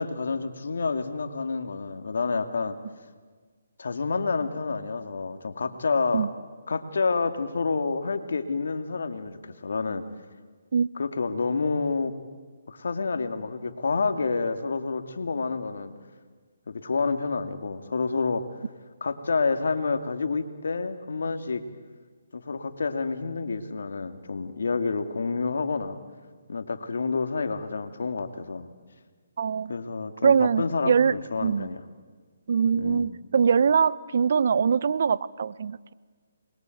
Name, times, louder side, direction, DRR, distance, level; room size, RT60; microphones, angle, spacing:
voice 1, 0.0-2.8 3.8-6.3 6.7-10.0 11.0-12.1 12.7-15.9 16.7-18.4 19.0-21.6 22.3-26.0 26.5-28.7 29.7-31.8 32.8-33.1, left 4 dB, 70° left, 8 dB, 2.3 m, -28 dB
voice 2, 29.4-29.7 30.2-31.1 31.4-31.7 32.5-35.9, right 6 dB, 60° right, 19 dB, 0.7 m, -23 dB
27.5 x 22.0 x 9.3 m, 1.5 s
hypercardioid pair, 150°, 0 cm